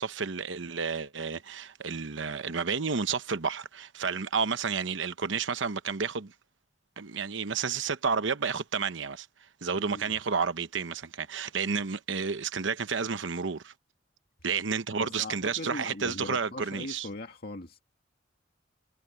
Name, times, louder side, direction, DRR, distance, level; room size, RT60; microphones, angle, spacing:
voice 1, 0.0-6.3 7.0-9.3 9.6-13.7 14.4-17.1, right 5 dB, 80° right, 0.9 m, -31 dB
voice 2, 9.8-10.2 15.0-17.8, left 2 dB, 55° left, 2.1 m, -40 dB
head